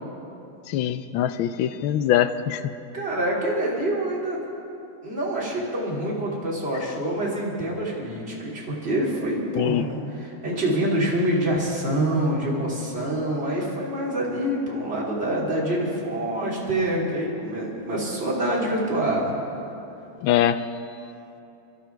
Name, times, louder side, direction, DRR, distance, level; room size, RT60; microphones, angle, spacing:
voice 1, 0.7-2.6 9.5-9.9 20.2-20.6, left 11 dB, 80° left, 12 dB, 1.4 m, -23 dB
voice 2, 2.9-4.4 5.0-19.3, right 1 dB, 30° right, -5 dB, 3.2 m, -26 dB
24.5 x 12.0 x 4.6 m, 2.8 s
omnidirectional pair, 2.3 m